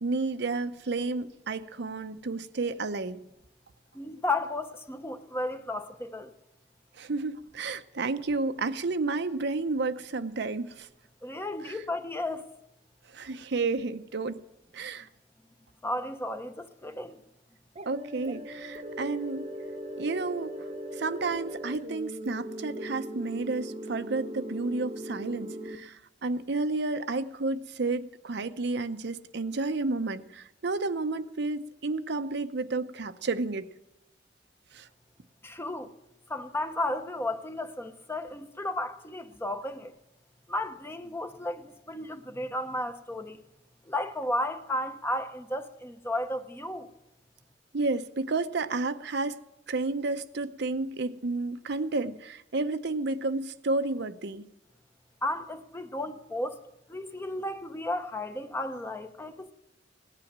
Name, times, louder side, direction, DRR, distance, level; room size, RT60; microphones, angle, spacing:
voice 1, 0.0-3.2 7.0-10.9 11.6-11.8 13.1-14.4 14.7-15.1 17.9-19.4 20.0-20.6 20.9-33.7 34.7-34.9 47.7-49.4 49.7-54.5, right 3 dB, 65° right, 0.7 m, -31 dB
voice 2, 3.9-6.3 11.2-12.5 15.8-17.2 35.4-35.9 36.3-39.9 40.5-43.4 43.9-46.9 55.2-56.6 56.9-59.5, left 1 dB, 15° left, 0.9 m, -33 dB
sound 1, 17.8-25.8, equal, 35° right, 0.9 m, -39 dB
17.5 x 11.0 x 7.3 m
head